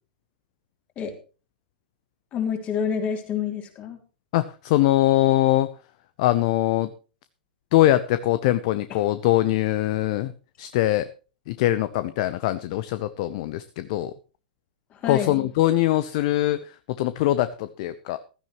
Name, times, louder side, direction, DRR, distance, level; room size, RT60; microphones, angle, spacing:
voice 1, 2.3-4.0 8.9-9.0 14.9-15.5, left 7 dB, 30° left, 4 dB, 3.5 m, -28 dB
voice 2, 4.3-5.7 6.2-6.9 7.7-10.3 10.6-11.1 11.5-14.1 15.1-18.2, left 15 dB, 45° left, 14 dB, 0.8 m, -22 dB
15.5 x 13.5 x 3.1 m, 0.34 s
figure-of-eight pair, 100°, 5 cm